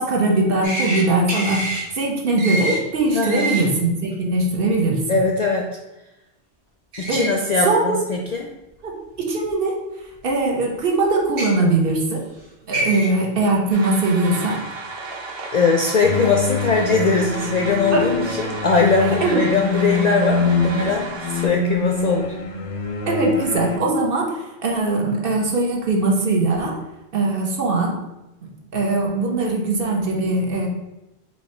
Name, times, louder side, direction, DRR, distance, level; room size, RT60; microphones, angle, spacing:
voice 1, 0.0-5.2 7.1-7.3 7.6-8.0 8.8-9.8 10.2-12.2 12.7-14.6 17.9-18.3 19.2-19.4 23.1-26.8 27.1-27.9 28.4-30.7, right 2 dB, 55° right, 0 dB, 1.0 m, -21 dB
sound 1, 0.6-1.0 1.3-1.8 2.4-2.8 3.2-3.6 6.9-7.3 8.1-8.2 9.4-9.5 11.2-11.5 12.4-12.5 12.7-13.1, right 1 dB, 80° right, 1.4 m, -25 dB
voice 2, 3.1-3.6 5.1-5.7 7.0-8.5 15.5-22.3, left 4 dB, 55° left, 1 dB, 0.4 m, -20 dB
sound 2, 13.7-21.5, right 3 dB, 30° right, 0.6 m, -34 dB
sound 3, 16.0-23.8, left 3 dB, 90° left, 0.9 m, -25 dB
4.5 x 2.8 x 4.2 m, 0.97 s
omnidirectional pair, 1.1 m